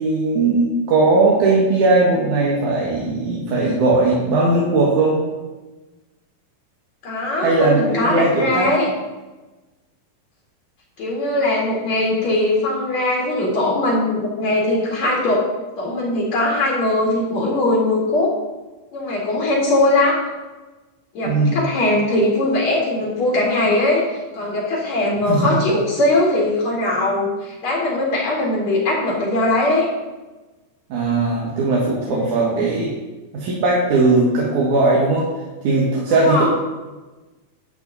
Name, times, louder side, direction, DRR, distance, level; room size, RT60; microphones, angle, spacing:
voice 1, 0.0-5.2 7.4-8.7 21.2-21.6 25.3-25.5 30.9-32.9 33.3-35.3 35.6-36.5, right 3 dB, 60° right, -4 dB, 2.8 m, -18 dB
voice 2, 7.0-8.9 11.0-15.4 15.8-18.3 18.9-20.2 21.1-29.9 32.0-32.6 36.1-36.5, left 2 dB, 55° left, -5 dB, 3.2 m, -20 dB
11.5 x 8.1 x 4.1 m, 1.2 s
omnidirectional pair, 4.1 m